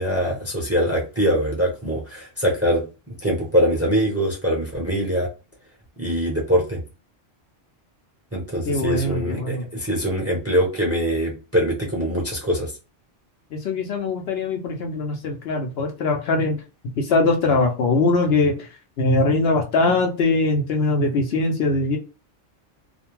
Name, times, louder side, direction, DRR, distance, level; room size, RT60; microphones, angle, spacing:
voice 1, 0.0-2.8 3.2-5.3 6.0-6.8 8.3-12.7, equal, 15° right, -2 dB, 0.6 m, -23 dB
voice 2, 8.7-9.6 13.5-16.6 17.0-18.6 19.0-22.0, left 3 dB, 65° left, 2 dB, 0.8 m, -21 dB
2.4 x 2.1 x 3.0 m, 0.31 s
omnidirectional pair, 1.2 m